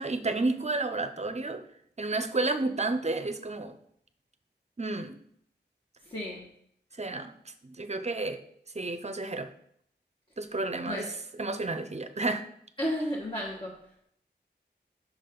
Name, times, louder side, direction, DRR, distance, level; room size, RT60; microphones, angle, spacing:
voice 1, 0.0-1.6 2.0-3.7 4.8-5.2 7.0-7.3 7.6-8.4 8.7-9.5 10.4-11.1 11.4-12.5, right 2 dB, 35° right, 9 dB, 0.6 m, -31 dB
voice 2, 6.0-6.5 10.9-11.1 12.8-14.0, equal, 30° left, -3 dB, 1.2 m, -33 dB
6.0 x 4.2 x 5.1 m, 0.68 s
wide cardioid pair, 60°, 18 cm